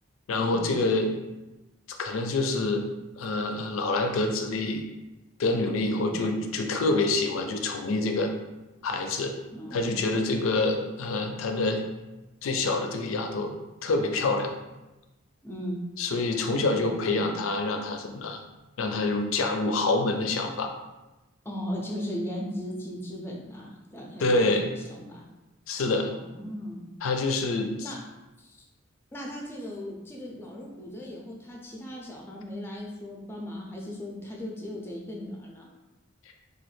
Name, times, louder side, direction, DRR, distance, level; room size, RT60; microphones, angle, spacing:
voice 1, 0.3-1.2 2.0-2.9 3.2-4.8 5.4-8.3 8.8-9.3 9.7-11.8 12.4-13.5 13.8-14.5 16.0-18.4 18.8-20.7 24.2-24.7 25.7-26.1 27.0-27.9, left 2 dB, 85° left, 5 dB, 0.4 m, -26 dB
voice 2, 5.7-6.2 9.5-10.3 15.4-15.8 16.8-17.3 21.4-25.2 26.1-26.8 27.8-28.0 28.4-28.7 29.1-35.7, equal, 10° left, -1 dB, 0.4 m, -38 dB
3.0 x 2.3 x 3.1 m, 1.0 s
head